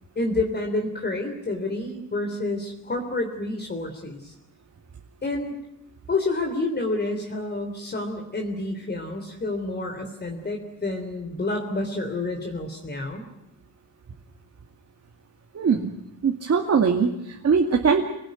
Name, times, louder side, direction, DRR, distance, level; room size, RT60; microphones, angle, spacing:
voice 1, 0.2-4.3 5.2-5.5 6.1-13.2, left 2 dB, 25° left, 2 dB, 3.4 m, -29 dB
voice 2, 15.5-15.9 16.2-18.1, right 5 dB, 40° right, 1 dB, 2.4 m, -21 dB
27.0 x 19.0 x 9.5 m, 0.86 s
cardioid pair, 125°, 37 cm